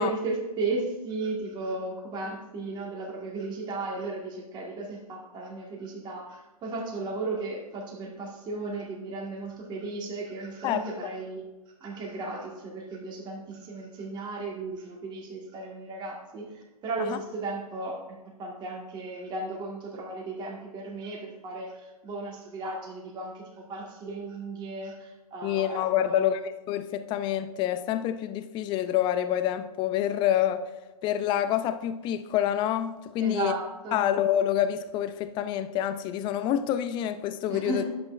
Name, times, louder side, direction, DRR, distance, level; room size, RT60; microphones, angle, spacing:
voice 1, 0.0-11.4 11.8-18.0 18.4-26.3 33.2-34.1 37.5-37.9, right 3 dB, 20° right, 1.8 m, -35 dB
voice 2, 25.4-30.7 31.0-33.5 33.9-37.8, left 11 dB, 25° left, 0.5 m, -27 dB
10.5 x 7.9 x 2.5 m
hypercardioid pair, 130°, 19 cm